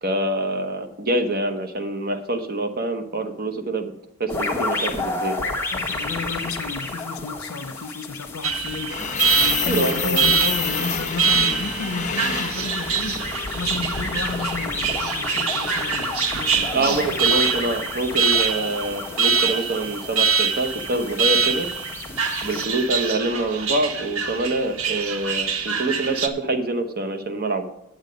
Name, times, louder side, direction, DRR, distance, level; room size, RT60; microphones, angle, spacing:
voice 1, 0.0-3.9 4.2-5.4 9.7-10.3 16.7-21.7 22.4-27.7, right 2 dB, 45° right, 1.0 m, -25 dB
sound 1, 4.3-22.7, left 3 dB, 10° left, 1.2 m, -32 dB
voice 2, 5.7-17.4 22.3-22.4, left 4 dB, 75° left, 0.7 m, -32 dB
Alarm, 8.4-26.3, right 6 dB, 70° right, 0.8 m, -25 dB
sound 2, 8.9-22.9, left 6 dB, 35° left, 1.1 m, -32 dB
8.6 x 8.0 x 5.2 m
head